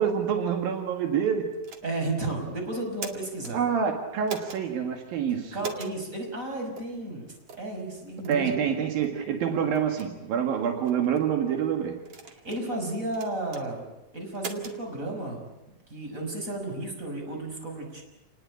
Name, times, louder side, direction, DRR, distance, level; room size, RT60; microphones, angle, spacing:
voice 1, 0.0-1.5 3.5-5.5 8.3-12.0, right 7 dB, 85° right, 4 dB, 3.8 m, -27 dB
sound 1, 1.6-2.1 2.8-3.5 4.3-4.6 5.6-5.9 6.8-6.9 7.5-7.7 8.2-8.4 9.0-9.1 9.7-10.1 10.8-11.2 12.0-12.6 13.1-13.6 14.3-14.8, right 5 dB, 45° right, 2.8 m, -40 dB
voice 2, 1.8-3.6 5.5-7.3 7.6-8.5 12.3-13.8 14.1-15.5 15.9-18.0, right 2 dB, 20° right, 2 dB, 6.2 m, -33 dB
29.0 x 20.0 x 8.7 m, 0.95 s
omnidirectional pair, 4.0 m